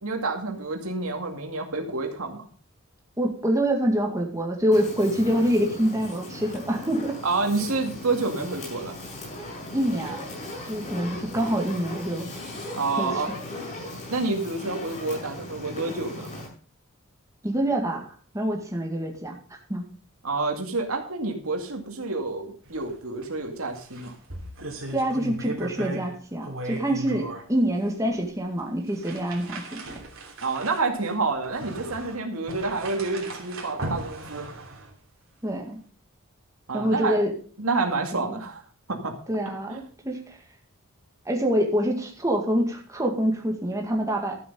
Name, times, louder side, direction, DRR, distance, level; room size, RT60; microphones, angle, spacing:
voice 1, 0.0-2.5 7.2-9.0 12.8-13.3 14.1-16.3 20.2-24.2 30.4-34.5 36.7-37.2 37.6-38.6 38.9-39.2 39.7-39.8, right 3 dB, 90° right, 3 dB, 2.2 m, -28 dB
voice 2, 3.2-7.2 9.7-10.3 10.6-12.3 13.0-13.1 17.4-19.4 19.7-19.9 24.9-29.8 35.4-35.8 36.7-37.3 38.2-38.4 39.3-40.4 41.3-44.4, equal, 15° right, 1 dB, 2.0 m, -26 dB
Fire, 4.7-16.5, left 1 dB, 35° left, 7.0 m, -38 dB
sound 1, 22.6-22.9 23.2-23.3 23.7-26.1 26.4-27.4 28.1-28.2 28.9-34.9, right 1 dB, 65° right, 3.1 m, -37 dB
12.5 x 7.8 x 5.4 m, 0.42 s
head